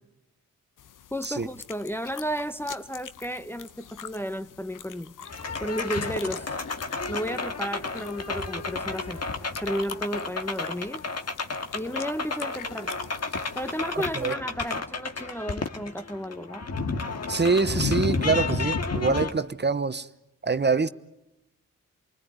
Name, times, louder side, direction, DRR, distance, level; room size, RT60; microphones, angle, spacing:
sound 1, 0.8-14.3, left 9 dB, 80° left, 0.9 m, -46 dB
voice 1, 1.1-5.1 5.6-6.5 7.1-9.2 9.6-11.0 11.7-12.9 13.5-16.7, equal, 5° left, 0.9 m, -33 dB
Street techno trumpet, 5.2-19.3, left 4 dB, 55° left, 2.0 m, -31 dB
voice 2, 17.3-20.1 20.4-20.9, right 4 dB, 35° right, 1.0 m, -25 dB
28.5 x 20.5 x 9.5 m
cardioid pair, 55°, 31 cm